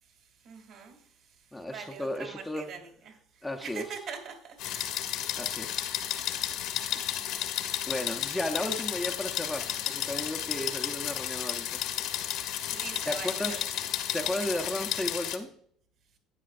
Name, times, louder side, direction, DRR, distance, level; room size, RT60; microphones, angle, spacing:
voice 1, 0.0-5.4 12.7-13.9 14.4-14.7, right 6 dB, 55° right, 4 dB, 2.7 m, -45 dB
voice 2, 1.5-2.7 3.4-3.8 5.4-6.0 7.9-11.8 13.1-13.6 14.1-15.5, left 1 dB, 5° left, 2 dB, 0.6 m, -34 dB
sound 1, 4.6-15.4, left 11 dB, 70° left, 1.1 m, -33 dB
11.5 x 9.3 x 2.5 m, 0.64 s
cardioid pair, 140°, 0 cm